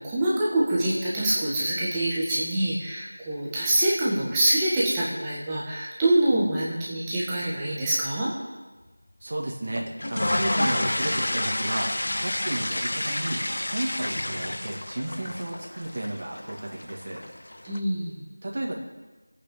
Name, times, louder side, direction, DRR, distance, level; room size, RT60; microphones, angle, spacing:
voice 1, 0.0-8.3 17.6-18.2, right 1 dB, 10° right, -7 dB, 1.5 m, -25 dB
voice 2, 9.2-11.9 12.2-17.2 18.4-18.7, right 1 dB, 35° right, -1 dB, 2.0 m, -33 dB
sound 1, 9.8-17.8, left 1 dB, 60° left, 0.8 m, -29 dB
26.0 x 8.7 x 3.8 m, 1.2 s
figure-of-eight pair, 175°, 0 cm